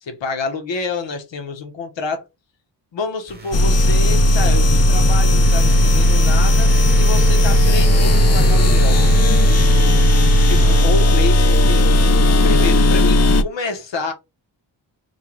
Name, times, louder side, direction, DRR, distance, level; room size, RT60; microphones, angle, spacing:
voice 1, 0.0-2.2 2.9-6.7 7.0-9.0 10.5-11.9 12.4-14.1, left 3 dB, 85° left, 1.2 m, -27 dB
sound 1, 3.3-11.6, right 5 dB, 20° right, 1.1 m, -29 dB
sound 2, 3.5-13.4, left 1 dB, 40° left, 0.4 m, -14 dB
4.5 x 2.3 x 3.2 m
wide cardioid pair, 135°, 43 cm